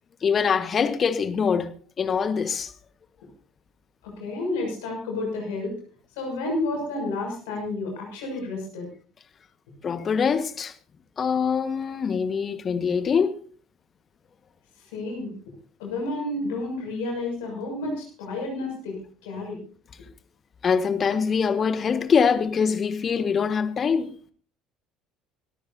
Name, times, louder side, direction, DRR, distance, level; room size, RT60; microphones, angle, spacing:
voice 1, 0.2-1.7 2.0-2.7 9.8-10.7 11.2-13.3 20.6-24.1, left 6 dB, 40° left, 1.4 m, -23 dB
voice 2, 4.0-5.8 6.2-8.9 14.8-15.4 15.8-19.6, left 2 dB, 70° left, 6.4 m, -31 dB
25.5 x 13.5 x 2.7 m
figure-of-eight pair, 60°, 0 cm